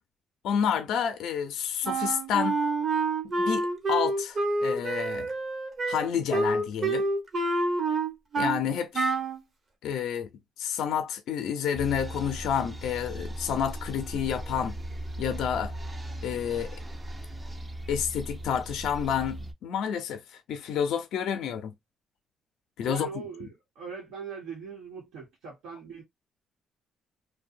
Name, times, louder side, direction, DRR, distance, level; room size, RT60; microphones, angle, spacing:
voice 1, 0.4-2.6 3.4-5.3 5.9-7.1 8.4-9.1 9.8-10.3 10.6-14.8 15.2-15.7 16.2-16.7 17.9-21.7 22.8-23.1, left 8 dB, 80° left, 0.5 m, -29 dB
Wind instrument woodwind instrument, 1.8-8.6 8.9-9.4, right 2 dB, 45° right, 1.1 m, -27 dB
sound 1, 11.7-19.5, right 1 dB, 20° right, 0.5 m, -38 dB
voice 2, 22.9-26.0, right 6 dB, 90° right, 1.1 m, -40 dB
2.6 x 2.2 x 2.5 m
cardioid pair, 90°, 0 cm